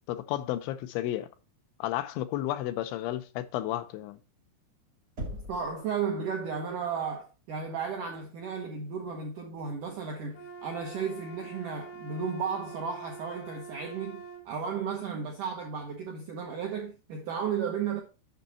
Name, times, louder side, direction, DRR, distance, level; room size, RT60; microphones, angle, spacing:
voice 1, 0.1-1.3 1.8-4.2, left 13 dB, 90° left, 3.1 m, -32 dB
Knock, 5.2-5.8, equal, 50° right, 1.0 m, -38 dB
voice 2, 5.3-18.0, right 6 dB, 80° right, 1.8 m, -34 dB
sound 1, 10.3-14.5, right 4 dB, 70° left, 1.6 m, -45 dB
7.9 x 6.2 x 4.0 m
omnidirectional pair, 5.2 m